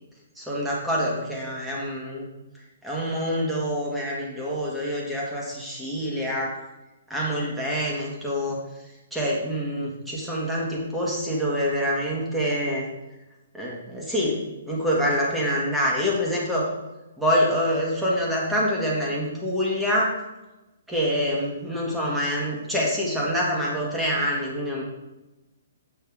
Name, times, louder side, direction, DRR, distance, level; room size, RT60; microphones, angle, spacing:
voice 1, 0.4-2.3 2.8-6.6 7.1-8.6 9.1-12.9 13.5-14.4 14.7-16.7 17.2-20.1 20.9-24.8, equal, 5° right, -4 dB, 1.8 m, -26 dB
7.0 x 5.5 x 3.5 m, 1.0 s
hypercardioid pair, 130°, 0 cm